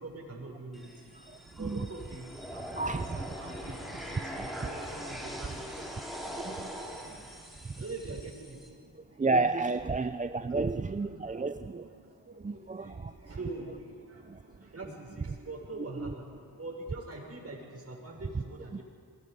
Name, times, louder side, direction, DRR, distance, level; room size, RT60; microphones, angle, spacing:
voice 1, 0.0-6.8 7.7-8.8 9.1-9.3 10.5-10.6 11.1-16.3 16.6-18.8, right 2 dB, 35° right, 0 dB, 6.4 m, -45 dB
sound 1, 0.7-8.7, equal, ahead, 5.5 m, -42 dB
voice 2, 2.8-3.2 6.4-6.8 9.2-11.8 12.4-13.1 14.3-14.4 16.0-16.1, right 3 dB, 20° right, 10 dB, 0.5 m, -31 dB
28.0 x 21.0 x 5.4 m, 2.1 s
cardioid pair, 70°, 41 cm